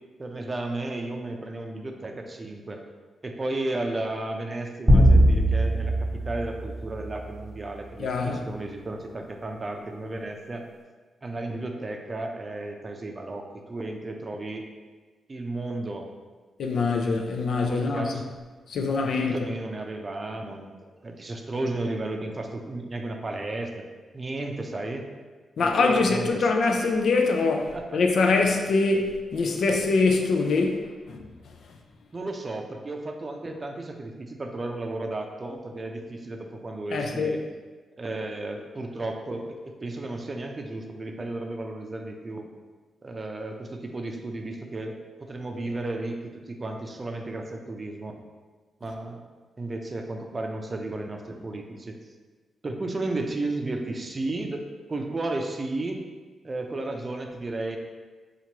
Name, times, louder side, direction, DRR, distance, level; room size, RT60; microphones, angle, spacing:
voice 1, 0.2-2.8 3.2-10.6 11.2-14.7 15.3-16.1 17.7-18.3 19.0-23.8 24.1-25.1 25.6-26.5 27.7-28.0 32.1-37.4 38.0-42.5 43.0-48.2 48.8-49.2 49.6-52.0 52.6-54.6 54.9-56.0 56.4-57.8, right 2 dB, 35° right, 0.5 m, -33 dB
sound 1, 4.9-7.5, equal, ahead, 1.2 m, -20 dB
voice 2, 8.0-8.4 16.6-18.1 18.7-19.3 25.6-31.2 36.9-37.3, left 3 dB, 70° left, 0.4 m, -24 dB
4.5 x 2.5 x 2.9 m
supercardioid pair, 55°, 0 cm